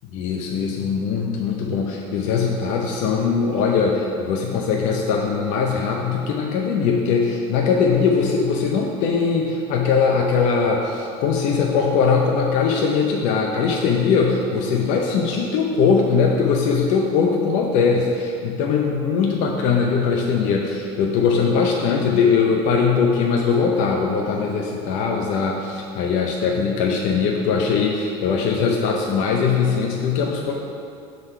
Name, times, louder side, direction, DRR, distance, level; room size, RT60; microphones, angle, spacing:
voice 1, 0.1-30.5, left 5 dB, 60° left, 0 dB, 0.7 m, -21 dB
6.3 x 4.0 x 5.4 m, 2.4 s
supercardioid pair, 125°, 14 cm